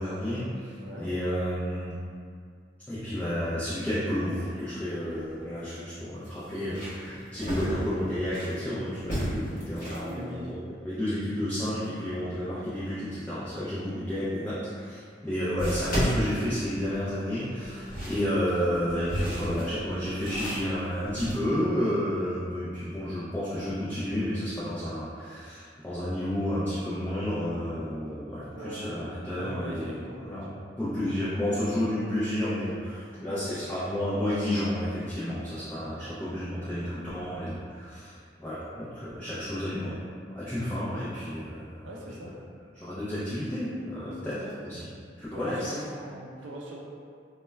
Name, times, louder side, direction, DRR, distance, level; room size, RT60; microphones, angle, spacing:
voice 1, 0.0-2.0 2.9-30.5 30.8-41.9 42.7-44.8 45.2-45.8, equal, 10° left, -11 dB, 0.3 m, -31 dB
voice 2, 0.8-1.1 9.9-10.5 13.9-14.2 28.5-30.6 33.3-33.5 41.8-42.4 44.1-44.8 45.3-46.8, right 1 dB, 85° right, -2 dB, 0.5 m, -41 dB
sound 1, 5.1-5.2 5.6-5.7 6.2-8.6 9.0-10.1 14.4-14.5 15.6-17.1 17.6-21.3, equal, 45° left, 0.8 m, -33 dB
2.2 x 2.1 x 3.2 m, 2.1 s
head